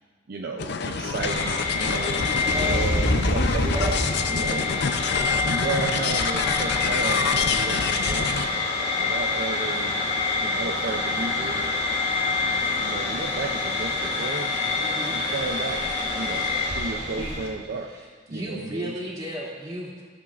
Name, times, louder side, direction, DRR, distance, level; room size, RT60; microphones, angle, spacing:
voice 1, 0.3-3.9 4.3-4.7 5.4-11.8 12.8-14.6 15.1-15.9 16.1-18.0 18.3-19.0, right 3 dB, 55° right, 2 dB, 0.5 m, -33 dB
sound 1, 0.6-8.5, left 5 dB, 60° left, 0.5 m, -27 dB
sound 2, 1.2-17.5, left 3 dB, 45° left, 2.7 m, -26 dB
voice 2, 2.5-3.2 3.6-3.9 14.8-15.2 17.2-17.3 18.3-20.0, equal, 20° right, -6 dB, 2.5 m, -33 dB
15.0 x 8.0 x 2.5 m, 1.5 s
head